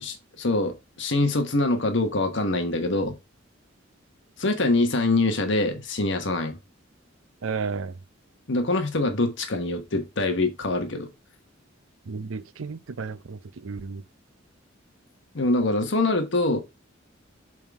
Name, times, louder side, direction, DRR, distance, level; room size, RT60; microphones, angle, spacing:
voice 1, 0.0-3.2 4.4-6.6 8.5-11.1 15.3-16.6, left 2 dB, 65° left, 1.3 m, -24 dB
voice 2, 7.4-7.9 12.1-14.0, right 5 dB, 85° right, 0.6 m, -33 dB
7.6 x 3.8 x 4.7 m
head